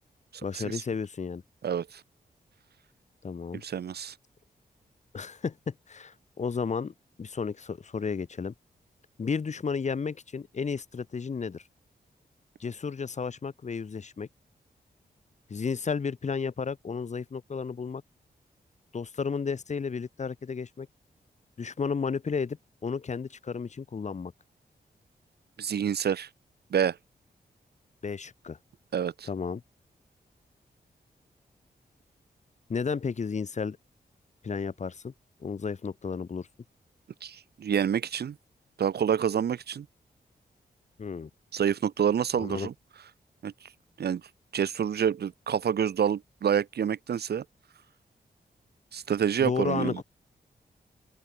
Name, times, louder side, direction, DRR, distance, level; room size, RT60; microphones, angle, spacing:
voice 1, 0.4-1.4 3.2-3.6 5.1-8.5 9.2-11.6 12.6-14.3 15.5-18.0 18.9-20.9 21.6-24.3 28.0-28.6 29.3-29.6 32.7-33.8 34.4-35.1 35.4-36.5 41.0-41.3 42.3-42.7 49.4-50.0, left 5 dB, 45° left, 3.2 m, -33 dB
voice 2, 1.6-2.0 3.5-4.1 25.6-26.3 26.7-27.0 28.9-29.3 37.2-38.4 38.8-39.9 41.5-42.7 43.4-43.5 44.0-44.2 44.5-47.4 48.9-50.0, right 8 dB, 80° right, 2.2 m, -28 dB
open air
wide cardioid pair, 150°, 16 cm